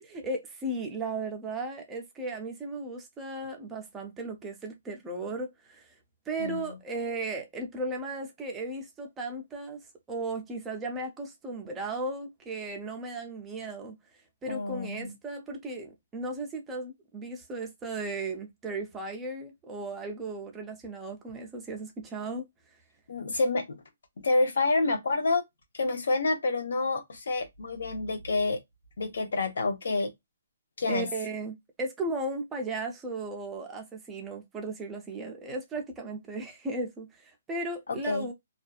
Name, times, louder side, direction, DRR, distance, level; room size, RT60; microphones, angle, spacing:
voice 1, 0.0-5.9 6.3-9.8 10.1-14.0 14.4-22.5 30.9-38.3, right 2 dB, 10° right, 0.4 m, -36 dB
voice 2, 6.4-6.8 14.5-15.1 23.1-23.8 24.2-25.4 25.7-28.6 29.0-30.1 30.8-31.1 37.9-38.3, left 3 dB, 70° left, 0.8 m, -28 dB
2.6 x 2.2 x 2.3 m
hypercardioid pair, 170°, 0 cm